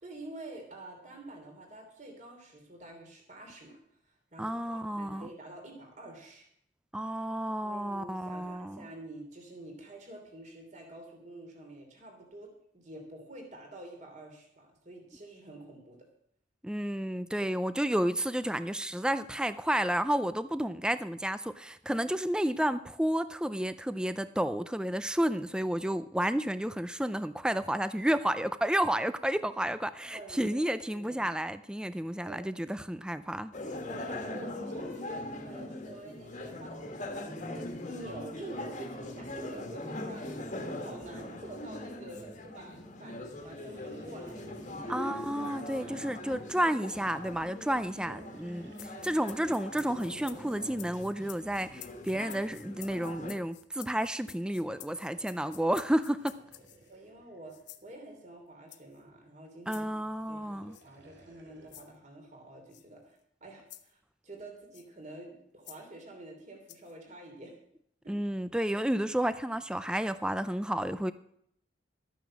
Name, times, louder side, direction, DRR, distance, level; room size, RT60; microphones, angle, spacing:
voice 1, 0.0-3.8 4.0-6.5 7.6-12.5 12.7-16.0 30.1-31.3 32.2-32.4 33.8-45.1 45.6-46.1 47.5-47.8 48.1-48.3 48.9-49.1 56.9-57.5 57.8-59.9 60.3-60.6 60.8-67.6 68.0-68.1, right 2 dB, 40° right, 3.0 m, -48 dB
voice 2, 4.4-5.3 6.9-8.9 16.6-33.5 44.9-56.4 59.7-60.7 68.1-71.1, right 1 dB, 5° right, 0.4 m, -31 dB
sound 1, 33.5-53.4, left 1 dB, 40° left, 1.6 m, -41 dB
sound 2, 43.1-46.7 48.0-52.3 54.5-58.5 59.8-62.1, right 1 dB, 70° right, 2.7 m, -62 dB
sound 3, 48.7-56.9 57.5-57.9 58.7-59.0 59.7-59.9 60.7-60.9 61.7-61.9 62.7-62.8 63.7-63.9 64.7-64.9 65.6-65.8 66.7-66.9, left 14 dB, 70° left, 0.9 m, -50 dB
13.0 x 9.3 x 6.2 m
head